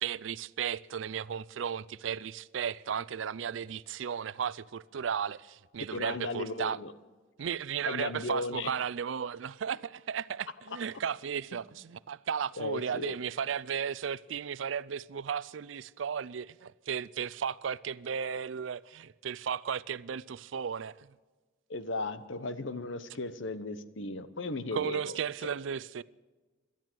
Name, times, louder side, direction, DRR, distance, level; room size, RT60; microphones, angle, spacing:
voice 1, 0.0-6.8 7.4-21.1 24.7-26.0, right 7 dB, 75° right, 0.4 m, -35 dB
voice 2, 5.9-6.9 7.9-8.7 12.6-13.2 21.7-25.2, left 3 dB, 75° left, 1.0 m, -36 dB
18.0 x 12.5 x 6.2 m
head